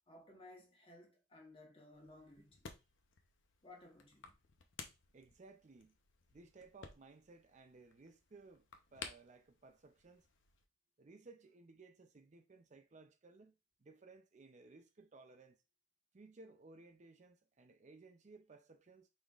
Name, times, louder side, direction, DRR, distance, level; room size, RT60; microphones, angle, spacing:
voice 1, 0.1-2.7 3.6-4.3, left 2 dB, 30° left, 1.2 m, -58 dB
sound 1, 1.9-10.7, left 5 dB, 90° left, 0.7 m, -56 dB
voice 2, 5.1-6.0 6.3-10.3 11.0-15.6 16.1-19.1, right 3 dB, 40° right, 0.5 m, -60 dB
5.1 x 3.9 x 2.4 m
head